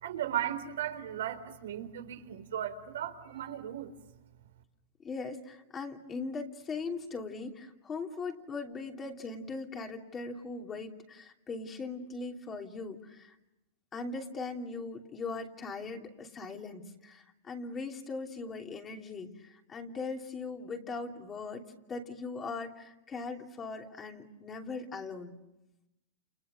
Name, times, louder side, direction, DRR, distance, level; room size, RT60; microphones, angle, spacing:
voice 1, 0.0-3.9, right 10 dB, 85° right, 6 dB, 4.1 m, -36 dB
voice 2, 5.0-13.3 13.9-25.4, left 4 dB, 20° left, 3 dB, 2.9 m, -40 dB
30.0 x 29.5 x 6.6 m, 0.94 s
supercardioid pair, 145°, 0 cm